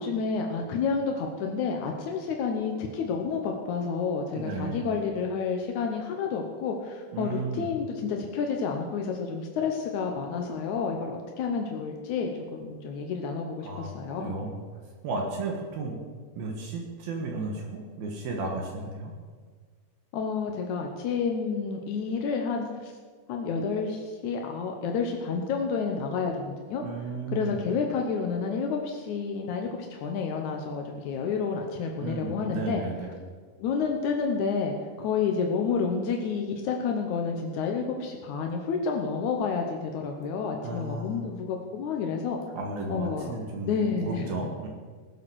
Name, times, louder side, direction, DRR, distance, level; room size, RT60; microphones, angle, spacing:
voice 1, 0.0-14.4 20.1-22.9 23.3-26.8 27.3-32.8 33.6-42.4 42.9-43.3 43.7-44.3, left 5 dB, 75° left, 2 dB, 1.8 m, -30 dB
voice 2, 4.4-4.8 7.1-7.7 13.6-14.6 15.0-16.0 16.4-19.1 26.8-27.6 32.0-33.1 40.6-41.2 42.5-44.7, right 3 dB, 65° right, 0 dB, 3.2 m, -34 dB
18.0 x 7.7 x 6.3 m, 1.6 s
omnidirectional pair, 4.8 m